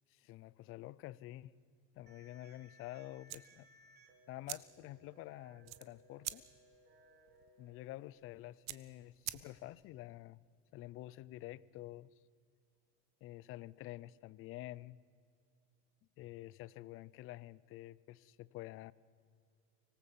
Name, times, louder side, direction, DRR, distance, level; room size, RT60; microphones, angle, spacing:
voice 1, 0.1-1.5 1.9-3.7 4.3-6.4 7.6-10.4 10.7-12.1 13.2-15.0 16.2-18.9, left 16 dB, 30° left, 21 dB, 0.5 m, -49 dB
sound 1, 2.1-8.1, right 1 dB, 25° right, 2.7 m, -65 dB
sound 2, 3.2-9.9, right 16 dB, 40° right, 0.9 m, -49 dB
25.0 x 18.0 x 7.4 m, 2.3 s
supercardioid pair, 150°, 42 cm